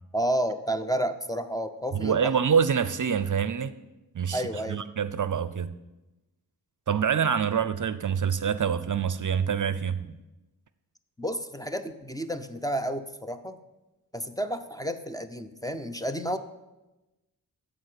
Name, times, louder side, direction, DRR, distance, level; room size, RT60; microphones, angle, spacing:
voice 1, 0.1-2.3 4.3-4.8 11.2-13.6 14.1-16.4, equal, 10° left, 9 dB, 0.7 m, -31 dB
voice 2, 1.9-3.7 4.1-4.4 4.7-5.7 6.9-10.2, right 7 dB, 50° right, 14 dB, 0.6 m, -26 dB
14.5 x 4.9 x 8.2 m, 1.0 s
wide cardioid pair, 95°, 40 cm